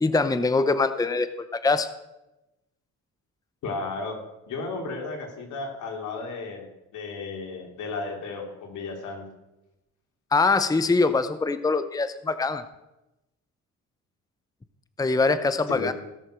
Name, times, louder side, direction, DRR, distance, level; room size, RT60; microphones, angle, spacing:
voice 1, 0.0-1.9 10.3-12.6 15.0-15.9, left 3 dB, 10° left, 12 dB, 0.7 m, -23 dB
voice 2, 3.6-4.2 4.5-6.7 6.9-9.2 15.7-15.9, left 3 dB, 80° left, 2 dB, 3.0 m, -33 dB
17.0 x 6.5 x 6.4 m, 0.97 s
cardioid pair, 90°, 30 cm